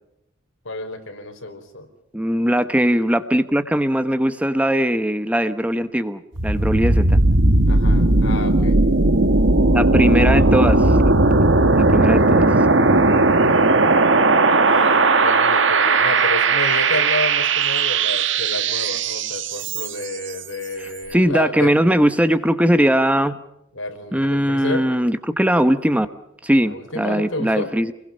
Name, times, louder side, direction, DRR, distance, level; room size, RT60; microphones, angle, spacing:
voice 1, 0.6-1.9 7.7-8.8 12.0-12.3 13.2-13.7 14.6-21.9 23.7-24.9 26.6-27.7, left 2 dB, 85° left, 4 dB, 5.1 m, -30 dB
voice 2, 2.1-7.2 9.7-11.1 11.8-12.5 20.8-23.4 24.1-26.1 26.4-27.9, equal, 5° right, 10 dB, 1.0 m, -20 dB
sound 1, 6.4-20.2, right 3 dB, 65° right, 1.7 m, -17 dB
29.0 x 21.5 x 5.6 m, 0.82 s
head